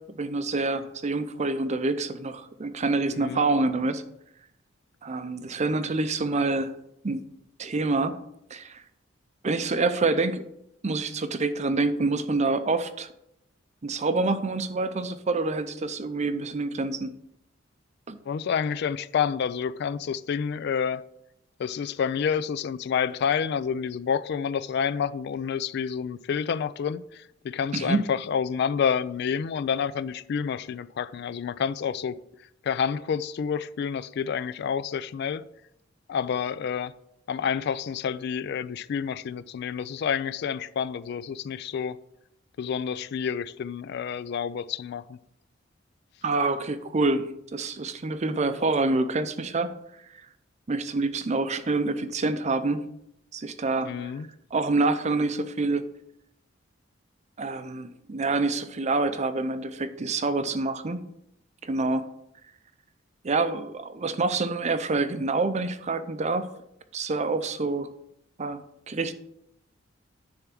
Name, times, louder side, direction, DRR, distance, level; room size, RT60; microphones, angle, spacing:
voice 1, 0.2-4.0 5.0-6.7 7.0-7.2 7.6-8.2 8.5-8.8 9.4-10.4 10.8-13.1 13.8-17.1 18.1-18.2 27.7-28.0 46.2-49.7 50.7-52.8 53.3-54.1 54.5-55.9 57.4-61.0 61.6-62.1 63.2-66.5 66.9-67.9 68.4-68.6 68.9-69.1, right 3 dB, 35° right, 0.5 m, -27 dB
voice 2, 3.1-3.5 18.3-21.0 21.6-32.2 32.6-35.4 36.1-36.9 37.3-42.0 42.6-45.2 53.8-54.3, left 7 dB, 55° left, 0.3 m, -29 dB
10.0 x 3.5 x 5.9 m
head